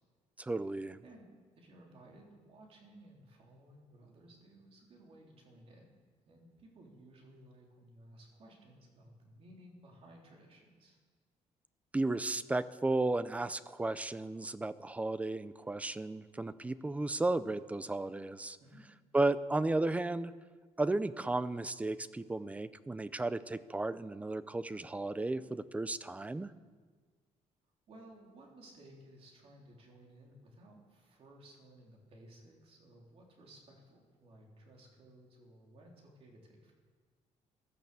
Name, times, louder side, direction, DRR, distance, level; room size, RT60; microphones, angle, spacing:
voice 1, 0.4-1.0 11.9-18.6 19.1-20.3 20.8-26.5, right 2 dB, 10° right, 15 dB, 0.4 m, -34 dB
voice 2, 1.6-5.9 6.2-11.0 18.6-18.9 27.9-36.7, right 1 dB, 50° right, 0 dB, 3.5 m, -57 dB
16.5 x 12.0 x 6.9 m, 1.5 s
cardioid pair, 165°, 13 cm